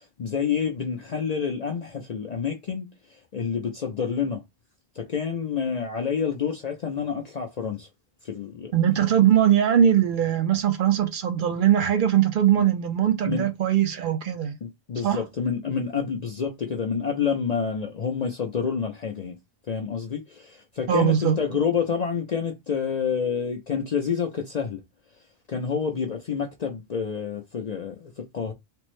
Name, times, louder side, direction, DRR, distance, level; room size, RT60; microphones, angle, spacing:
voice 1, 0.0-4.4 5.0-7.9 8.2-8.7 12.6-12.7 13.2-13.5 14.6-19.4 19.7-24.8 25.5-28.5, left 6 dB, 65° left, 0.4 m, -28 dB
voice 2, 8.7-14.6 15.0-15.2 20.9-21.4, right 10 dB, 60° right, 0.5 m, -21 dB
3.4 x 2.0 x 3.0 m
omnidirectional pair, 1.3 m